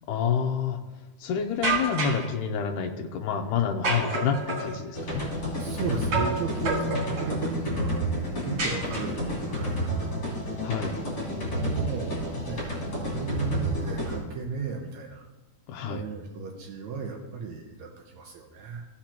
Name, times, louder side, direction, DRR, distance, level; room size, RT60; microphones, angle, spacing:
voice 1, 0.1-0.8 1.2-5.3 10.6-11.0 15.7-16.0, left 7 dB, 85° left, 2 dB, 2.2 m, -28 dB
sound 1, 1.6-2.3 3.8-4.7 6.1-6.4 6.6-7.3 8.6-9.3, right 3 dB, 50° right, 4.0 m, -28 dB
sound 2, 4.9-14.2, equal, 30° left, 3.9 m, -30 dB
voice 2, 5.6-8.0 8.4-10.2 11.6-15.2 15.9-18.9, right 5 dB, 70° right, 1 dB, 2.1 m, -35 dB
17.0 x 6.0 x 2.9 m, 1.2 s
omnidirectional pair, 3.5 m